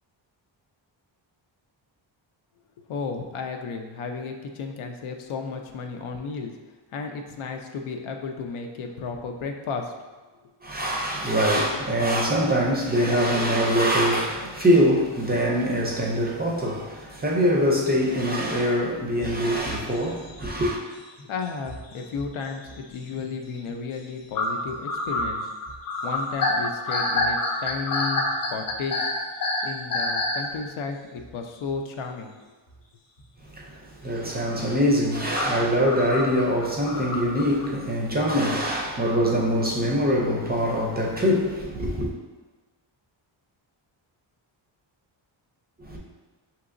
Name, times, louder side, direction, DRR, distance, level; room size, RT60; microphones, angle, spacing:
voice 1, 2.9-6.5 6.9-10.0 21.2-25.5 26.0-29.1 29.6-32.5, left 5 dB, 80° left, 0.6 m, -33 dB
voice 2, 10.6-20.8 33.5-33.7 34.0-42.1 45.8-46.0, equal, 20° right, 0.4 m, -23 dB
sound 1, 19.2-20.9 21.2-22.8 23.2-23.3 23.7-23.8 24.3-30.5 31.2-31.3 33.2-33.3 35.3-37.7, left 2 dB, 45° left, 0.7 m, -27 dB
5.9 x 2.9 x 2.5 m
wide cardioid pair, 155°, 48 cm